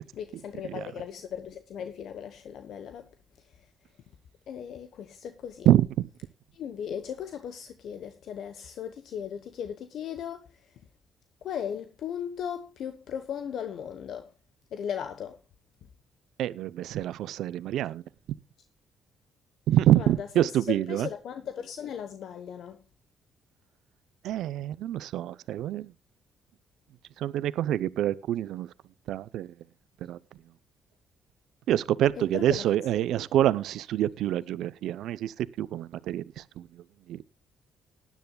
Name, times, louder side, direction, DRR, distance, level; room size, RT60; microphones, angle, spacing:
voice 1, 0.0-3.1 3.4-3.7 4.5-5.7 6.5-10.8 11.4-14.3 14.7-15.4 20.0-22.8 32.1-32.7 33.0-33.2, left 8 dB, 70° left, 1.0 m, -37 dB
voice 2, 5.7-6.1 16.4-18.0 19.7-21.1 24.2-25.9 27.2-28.7 29.1-29.5 30.0-30.2 31.7-36.7 37.1-37.2, right 12 dB, 80° right, 0.6 m, -26 dB
19.5 x 10.5 x 2.2 m
cardioid pair, 90°, 0 cm